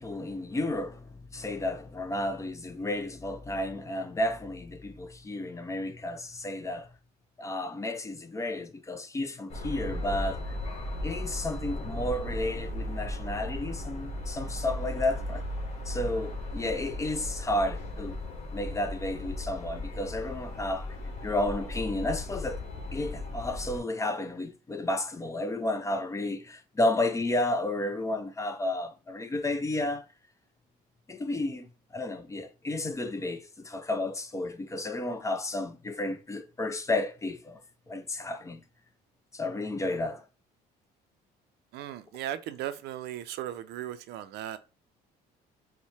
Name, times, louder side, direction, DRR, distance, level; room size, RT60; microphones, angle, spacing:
voice 1, 0.0-6.9 7.4-10.6 11.0-15.4 15.9-18.2 18.5-21.0 21.2-22.6 22.9-30.0 31.1-31.7 31.9-37.6 37.9-38.6 39.3-40.2, left 2 dB, 20° left, 0.4 m, -32 dB
sound 1, 9.5-23.8, left 1 dB, 40° left, 1.1 m, -36 dB
voice 2, 41.7-44.6, right 12 dB, 75° right, 0.4 m, -37 dB
4.1 x 2.1 x 3.1 m
cardioid pair, 110°, 17 cm